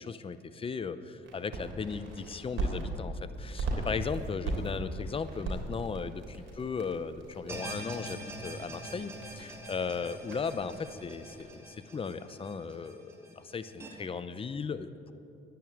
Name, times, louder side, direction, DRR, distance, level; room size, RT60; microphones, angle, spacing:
voice 1, 0.0-15.1, left 5 dB, 25° left, 12 dB, 0.6 m, -37 dB
sound 1, 1.2-2.8 3.3-11.4, right 2 dB, 75° right, 3.3 m, -39 dB
sound 2, 7.5-13.9, right 1 dB, 15° right, 2.4 m, -44 dB
10.5 x 9.3 x 8.4 m, 2.7 s
cardioid pair, 90°, 20 cm